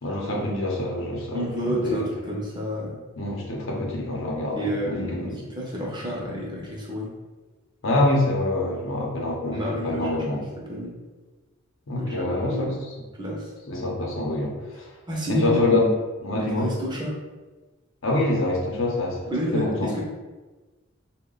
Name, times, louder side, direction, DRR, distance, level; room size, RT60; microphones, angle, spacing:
voice 1, 0.0-2.1 3.2-5.2 6.2-6.3 7.8-10.4 11.9-12.9 13.7-14.9 15.3-15.9 16.2-16.7 18.0-19.2 19.5-19.9, left 2 dB, 70° left, -2 dB, 0.8 m, -26 dB
voice 2, 1.3-3.0 4.6-7.1 9.5-10.9 12.0-12.8 13.2-13.5 15.1-15.8 16.4-17.1 19.3-20.0, equal, 20° right, -3 dB, 0.6 m, -30 dB
3.7 x 2.2 x 3.9 m, 1.2 s
head